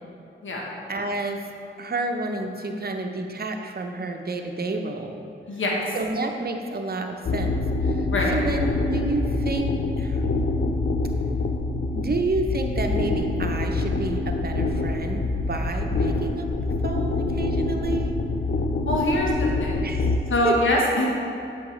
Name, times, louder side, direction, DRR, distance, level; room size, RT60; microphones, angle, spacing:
voice 1, 0.9-1.5 1.8-5.2 5.9-7.6 7.8-10.2 11.9-16.5 16.8-18.2 19.8-20.6, right 2 dB, 45° right, 4 dB, 0.8 m, -30 dB
voice 2, 5.5-5.8 8.1-8.3 18.8-19.8 20.3-21.1, left 1 dB, 65° left, -3 dB, 1.2 m, -23 dB
sound 1, 7.3-20.2, left 3 dB, 50° left, 0.7 m, -25 dB
8.2 x 6.4 x 3.2 m, 2.7 s
cardioid pair, 45°, 21 cm